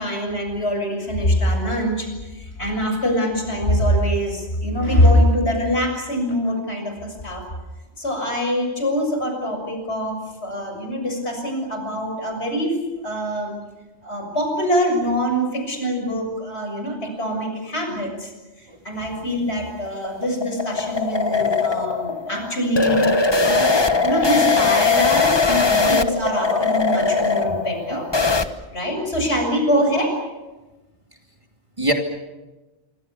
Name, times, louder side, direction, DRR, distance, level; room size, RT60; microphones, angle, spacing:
voice 1, 0.0-2.1 2.3-7.4 8.0-12.8 13.0-13.6 14.0-18.3 18.8-23.0 23.4-23.8 24.0-28.1 28.7-30.1, equal, 65° left, 3 dB, 7.2 m, -23 dB
voice 2, 18.7-19.0 23.0-23.9 25.5-26.7 27.5-27.6 27.9-28.1 31.8-31.9, right 1 dB, 25° right, 3 dB, 2.7 m, -28 dB
sound 1, 19.5-28.5, left 4 dB, 25° left, 1.1 m, -20 dB
27.0 x 25.0 x 7.0 m, 1.1 s
omnidirectional pair, 1.2 m